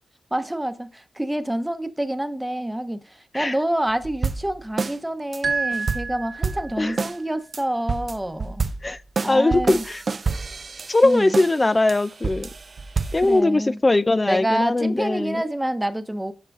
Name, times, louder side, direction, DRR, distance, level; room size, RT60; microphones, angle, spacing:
voice 1, 0.3-8.7 9.2-9.8 11.0-11.4 13.2-13.8 14.3-16.3, right 1 dB, 10° right, 0.9 m, -27 dB
sound 1, 3.9-5.0 5.3-5.4 5.7-7.2 7.5-7.6 7.9-11.6 11.9-13.4, right 4 dB, 55° right, 0.4 m, -28 dB
sound 2, 5.4-7.0, right 4 dB, 70° right, 1.6 m, -28 dB
voice 2, 8.8-10.0 10.9-12.5 13.1-15.4, left 2 dB, 30° left, 0.3 m, -20 dB
12.0 x 4.9 x 2.4 m
cardioid pair, 50°, 0 cm